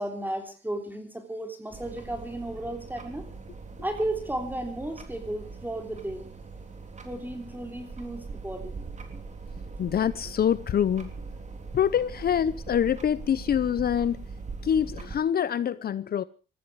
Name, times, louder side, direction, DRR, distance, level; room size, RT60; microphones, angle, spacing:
voice 1, 0.0-3.3 3.8-6.2 7.0-8.7, right 1 dB, 10° right, 3.3 m, -34 dB
sound 1, 1.7-15.2, right 4 dB, 35° right, 3.6 m, -41 dB
voice 2, 9.8-11.1 11.7-14.2 14.6-16.2, left 9 dB, 50° left, 0.8 m, -25 dB
19.5 x 15.0 x 4.8 m
cardioid pair, 90°, 20 cm